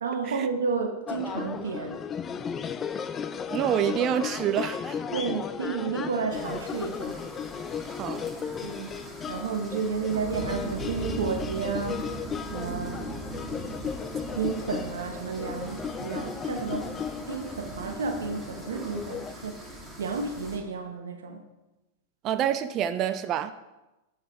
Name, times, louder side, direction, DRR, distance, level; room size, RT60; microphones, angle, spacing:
voice 1, 0.0-2.0 5.1-7.2 8.6-8.9 9.3-12.2 12.5-13.0 14.4-16.9 17.3-19.6 20.0-21.4, right 5 dB, 85° right, 1.1 m, -31 dB
sound 1, 1.1-19.3, left 7 dB, 25° left, 0.5 m, -35 dB
voice 2, 3.5-5.0 7.9-8.2 22.2-23.5, right 10 dB, 40° right, 0.5 m, -27 dB
sound 2, 6.3-20.6, right 1 dB, 10° right, 1.9 m, -40 dB
7.9 x 6.2 x 4.9 m
hypercardioid pair, 110°, 0 cm